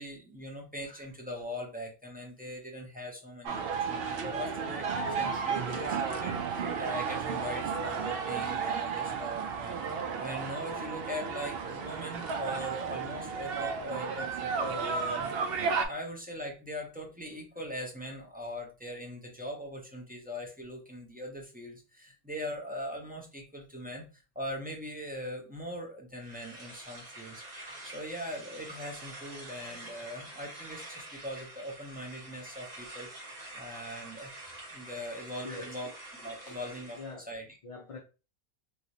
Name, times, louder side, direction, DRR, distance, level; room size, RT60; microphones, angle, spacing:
voice 1, 0.0-3.6 3.9-15.4 15.7-24.0 24.3-27.4 27.8-33.1 33.5-34.3 34.7-37.0 37.3-37.5, equal, 10° right, 0.6 m, -41 dB
sound 1, 3.4-15.8, right 5 dB, 70° right, 0.8 m, -33 dB
sound 2, 26.2-37.1, right 1 dB, 40° right, 1.4 m, -47 dB
voice 2, 36.9-37.3 37.6-38.0, left 3 dB, 40° left, 0.6 m, -43 dB
3.1 x 3.0 x 2.7 m
omnidirectional pair, 1.1 m